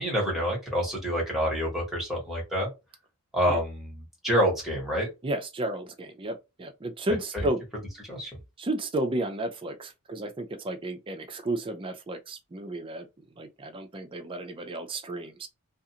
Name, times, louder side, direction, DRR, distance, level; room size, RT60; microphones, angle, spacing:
voice 1, 0.0-2.7 3.3-5.1 7.1-7.5 8.1-8.4, equal, ahead, 1.2 m, -27 dB
voice 2, 5.2-7.6 8.6-13.1 13.4-15.5, right 1 dB, 25° right, 0.4 m, -32 dB
2.4 x 2.4 x 2.8 m
head